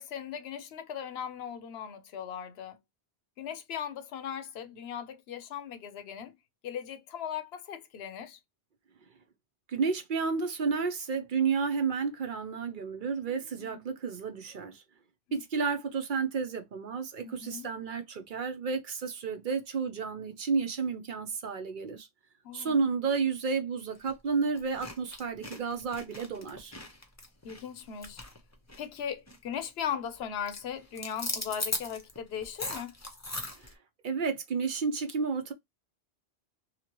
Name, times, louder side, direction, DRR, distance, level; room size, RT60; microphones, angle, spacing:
voice 1, 0.0-2.8 3.4-6.3 6.6-8.4 13.2-13.8 15.3-15.4 17.2-17.7 22.4-22.9 27.4-28.2 28.8-32.9, left 8 dB, 70° left, 0.9 m, -38 dB
voice 2, 9.7-14.8 15.3-22.1 22.5-26.7 33.6-33.7 34.0-35.5, right 5 dB, 55° right, 0.7 m, -31 dB
sound 1, 23.9-24.1 24.5-29.0 29.3-29.5 29.8-30.2 30.5-33.7, left 2 dB, 20° left, 0.6 m, -39 dB
2.9 x 2.8 x 2.9 m
omnidirectional pair, 1.1 m